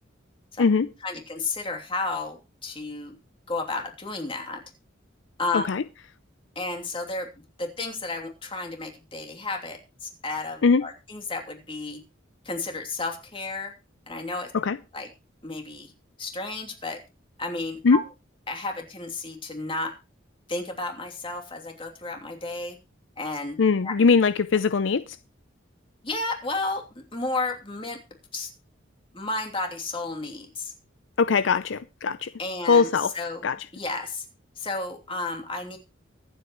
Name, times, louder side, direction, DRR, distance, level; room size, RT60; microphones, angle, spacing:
voice 1, 1.0-3.1 3.5-4.6 5.4-5.6 6.5-7.3 7.6-12.0 12.4-13.7 14.1-14.5 14.9-15.1 15.4-15.9 16.2-17.0 17.4-18.0 18.5-19.9 20.5-22.8 23.2-23.6 23.8-23.9 26.0-28.0 28.3-28.5 29.1-30.7 32.4-34.2 34.6-35.8, left 3 dB, 25° left, 2.9 m, -32 dB
voice 2, 23.6-25.0 31.2-32.3 32.7-33.1 33.4-33.6, left 5 dB, 70° left, 0.5 m, -21 dB
23.5 x 8.1 x 3.0 m
head